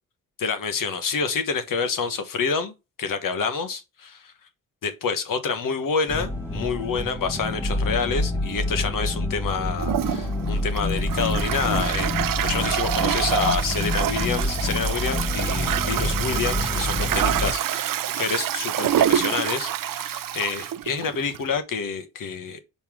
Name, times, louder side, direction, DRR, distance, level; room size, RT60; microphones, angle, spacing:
voice 1, 0.4-2.7 3.0-4.3 4.8-22.6, left 5 dB, 75° left, 1.3 m, -28 dB
sound 1, 6.1-17.5, left 2 dB, 10° left, 2.2 m, -27 dB
Toilet flush, 9.8-21.6, right 11 dB, 80° right, 0.6 m, -26 dB
5.5 x 4.3 x 6.1 m
wide cardioid pair, 145°, 33 cm